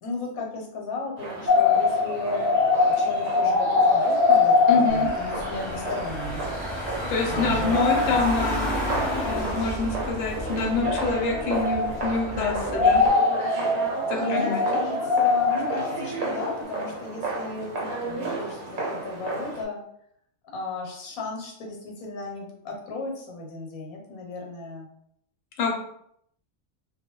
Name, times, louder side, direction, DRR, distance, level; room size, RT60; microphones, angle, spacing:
voice 1, 0.0-2.6 2.9-6.5 7.3-8.2 14.2-19.8 20.5-24.9, left 2 dB, 85° left, 1 dB, 1.1 m, -35 dB
sound 1, 1.2-19.6, right 2 dB, 70° right, 1.0 m, -34 dB
sound 2, 1.5-6.9 7.1-7.2 7.5-9.8 10.6-12.3 12.6-16.6, left 4 dB, 40° right, 0.7 m, -23 dB
voice 2, 4.7-5.1 7.1-13.0 14.1-14.6 25.6-25.7, left 3 dB, 65° left, 0 dB, 0.8 m, -27 dB
Car / Engine, 4.9-13.1, equal, 25° left, 0.9 m, -32 dB
2.2 x 2.2 x 2.9 m, 0.71 s
omnidirectional pair, 1.5 m